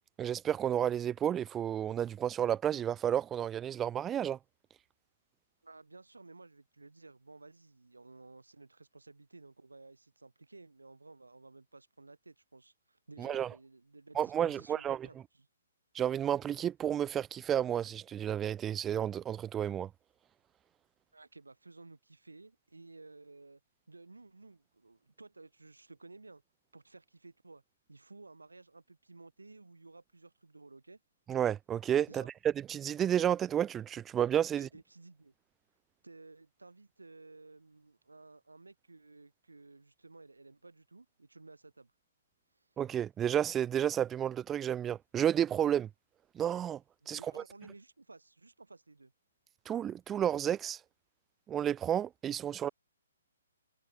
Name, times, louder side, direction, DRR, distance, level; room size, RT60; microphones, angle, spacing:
voice 1, 0.2-4.4 13.2-13.5 14.2-15.0 15.9-19.9 31.3-34.7 42.8-45.9 46.3-46.8 47.1-47.4 49.7-50.8 51.5-52.7, right 10 dB, 15° right, 0.5 m, -31 dB
voice 2, 5.6-15.5 21.1-23.6 23.9-26.4 26.7-27.6 27.9-31.0 32.1-32.3 34.5-35.3 36.0-41.9 42.5-42.7 47.0-49.1, right 3 dB, 80° right, 4.3 m, -55 dB
figure-of-eight pair, 130°, 0 cm